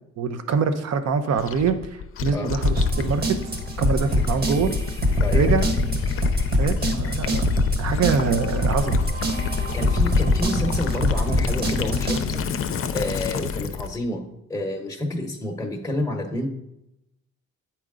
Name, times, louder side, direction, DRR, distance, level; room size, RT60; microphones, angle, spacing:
voice 1, 0.2-3.5 3.8-4.7 5.3-5.7 6.5-7.4 7.8-9.0, right 5 dB, 60° right, 9 dB, 0.8 m, -24 dB
Gurgling / Liquid, 1.4-14.0, left 6 dB, 45° left, 0.6 m, -29 dB
sound 1, 2.6-12.2, left 1 dB, 30° right, 1.4 m, -23 dB
voice 2, 5.2-5.6 9.7-12.5 12.9-14.2 14.5-16.5, left 1 dB, 10° left, 1 dB, 1.0 m, -29 dB
8.2 x 4.4 x 3.8 m, 0.85 s
cardioid pair, 90°, 30 cm